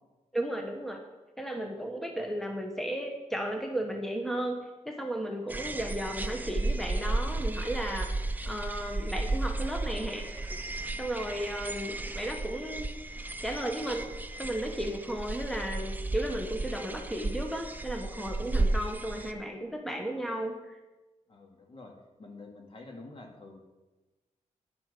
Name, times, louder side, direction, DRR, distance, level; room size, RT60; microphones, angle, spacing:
voice 1, 0.3-1.0 1.4-8.1 8.4-10.6 11.0-12.9 13.4-14.1 14.4-20.8, right 1 dB, ahead, 3 dB, 1.3 m, -34 dB
sound 1, 5.5-19.3, right 2 dB, 15° right, 0.7 m, -34 dB
voice 2, 21.3-23.6, left 2 dB, 45° left, 2 dB, 2.3 m, -48 dB
11.0 x 8.3 x 6.8 m, 1.1 s
wide cardioid pair, 115°, 13 cm